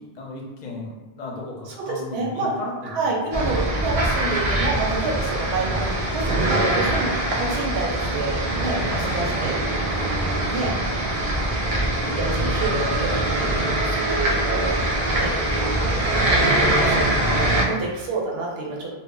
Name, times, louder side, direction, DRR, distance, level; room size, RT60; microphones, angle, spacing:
voice 1, 0.0-3.4 17.5-17.8, left 2 dB, 50° left, -3 dB, 0.6 m, -35 dB
voice 2, 1.9-2.5 2.8-11.2 11.6-11.8 12.1-15.3 15.6-18.9, right 3 dB, 80° right, -2 dB, 0.8 m, -29 dB
sound 1, 3.3-17.6, right 1 dB, 55° right, 0.4 m, -23 dB
2.1 x 2.0 x 3.6 m, 1.2 s
omnidirectional pair, 1.1 m